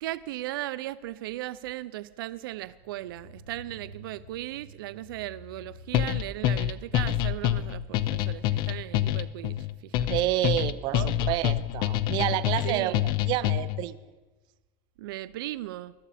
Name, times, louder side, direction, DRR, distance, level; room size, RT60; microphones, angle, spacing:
voice 1, 0.0-9.6 9.8-10.1 10.9-11.1 12.6-13.0 15.0-15.9, right 16 dB, 85° right, 0.4 m, -37 dB
sound 1, 2.4-13.5 13.7-13.8, equal, 85° left, 4.2 m, -53 dB
sound 2, 5.9-13.9, left 12 dB, 40° left, 0.5 m, -27 dB
voice 2, 10.1-13.0 13.3-14.0, right 15 dB, 40° right, 0.6 m, -29 dB
20.5 x 12.5 x 4.2 m
supercardioid pair, 150°, 11 cm